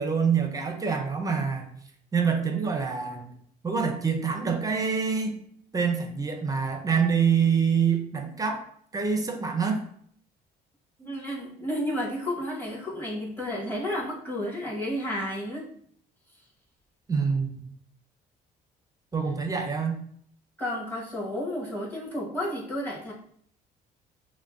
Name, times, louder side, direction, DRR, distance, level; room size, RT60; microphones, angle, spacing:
voice 1, 0.0-1.7 2.1-3.3 3.6-5.4 5.7-8.6 8.9-9.8 11.1-11.2 17.1-17.6 19.1-20.0, right 6 dB, 20° right, 4 dB, 0.6 m, -26 dB
voice 2, 11.0-15.7 20.6-23.1, equal, 10° left, -4 dB, 1.4 m, -32 dB
5.7 x 2.2 x 2.6 m, 0.62 s
cardioid pair, 110°, 17 cm